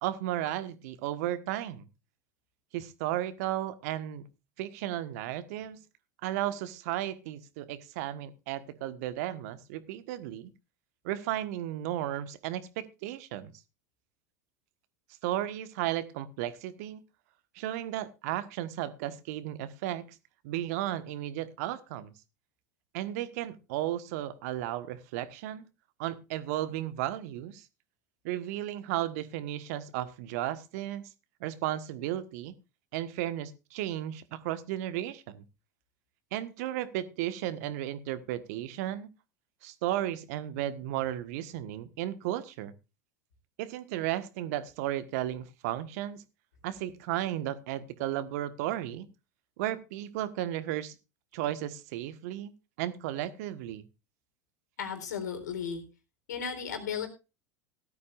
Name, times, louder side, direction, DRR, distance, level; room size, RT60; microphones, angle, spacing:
voice 1, 0.0-1.9 2.7-4.2 4.6-5.8 6.2-10.5 11.0-13.5 15.2-17.0 17.5-20.2 20.4-22.1 22.9-25.7 26.0-27.6 28.2-31.0 31.4-32.5 32.9-35.4 36.3-39.1 39.6-42.7 43.6-46.2 46.6-49.1 49.6-50.9 51.3-52.5 52.8-53.8, right 13 dB, 60° right, 13 dB, 1.4 m, -34 dB
voice 2, 54.8-55.8 56.3-57.1, left 7 dB, 75° left, 6 dB, 3.9 m, -35 dB
17.0 x 13.0 x 2.5 m, 0.29 s
hypercardioid pair, 85°, 9 cm